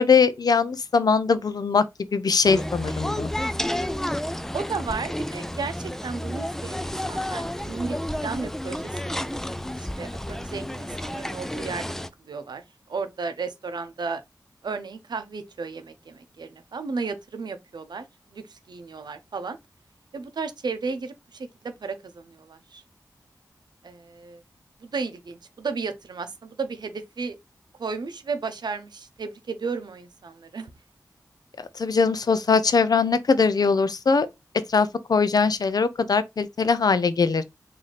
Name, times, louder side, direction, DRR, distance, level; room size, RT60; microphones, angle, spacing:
voice 1, 0.0-1.8 2.1-3.3 31.8-34.3 34.7-37.4, left 5 dB, 65° left, 0.5 m, -21 dB
sound 1, 2.4-12.1, left 1 dB, 5° left, 0.3 m, -31 dB
voice 2, 4.5-9.1 9.8-11.9 12.3-12.6 12.9-14.2 14.6-18.0 18.3-19.6 20.1-21.5 21.8-22.8 23.8-24.4 24.8-27.4 27.8-30.7, right 4 dB, 85° right, 0.6 m, -33 dB
4.0 x 2.7 x 3.1 m
wide cardioid pair, 60°, 7 cm